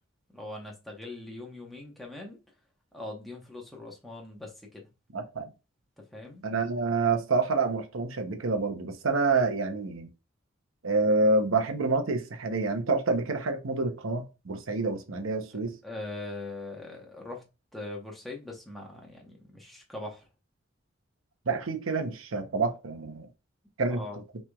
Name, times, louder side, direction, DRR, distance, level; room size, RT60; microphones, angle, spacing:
voice 1, 0.3-2.4 2.9-4.9 6.1-6.4 15.8-17.4 17.7-20.3 23.9-24.2, left 2 dB, ahead, 1.1 m, -41 dB
voice 2, 5.1-5.5 6.4-10.1 10.8-15.8 21.5-23.3 23.8-24.0, right 3 dB, 85° right, 0.8 m, -27 dB
5.8 x 3.3 x 2.3 m
head